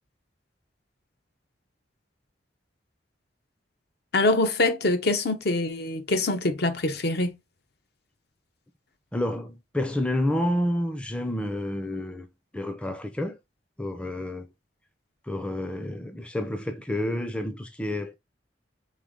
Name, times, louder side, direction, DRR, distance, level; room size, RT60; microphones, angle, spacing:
voice 1, 4.1-7.4, left 2 dB, 60° left, 0.8 m, -24 dB
voice 2, 9.1-12.3 12.5-13.3 13.8-14.5 15.3-18.1, left 1 dB, 5° left, 0.5 m, -29 dB
3.7 x 3.5 x 3.7 m
head